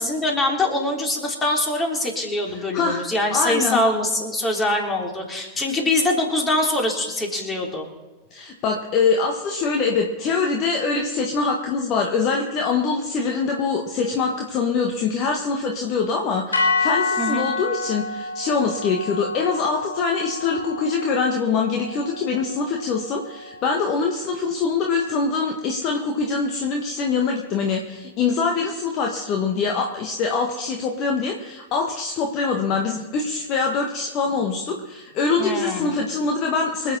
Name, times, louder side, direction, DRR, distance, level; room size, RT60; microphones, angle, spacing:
voice 1, 0.0-7.9 17.2-17.5 35.4-36.0, left 1 dB, 20° left, 1 dB, 3.4 m, -23 dB
voice 2, 2.5-3.0 3.3-3.8 8.3-37.0, left 4 dB, 35° left, 2 dB, 1.6 m, -24 dB
sound 1, 16.5-24.8, left 3 dB, 75° left, 1.7 m, -29 dB
25.5 x 8.7 x 4.2 m, 1.1 s
figure-of-eight pair, 90°, 0 cm